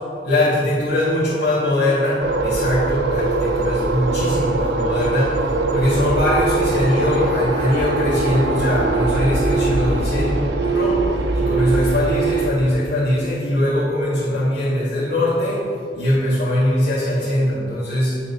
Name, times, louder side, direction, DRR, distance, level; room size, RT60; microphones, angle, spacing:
voice 1, 0.2-11.1 11.3-18.2, left 1 dB, 85° left, -12 dB, 1.7 m, -21 dB
sound 1, 2.2-12.5, right 3 dB, 80° right, 0.6 m, -21 dB
Bowed string instrument, 6.6-11.1 11.5-11.6, right 1 dB, 55° right, 0.9 m, -34 dB
8.6 x 3.8 x 5.3 m, 2.6 s
head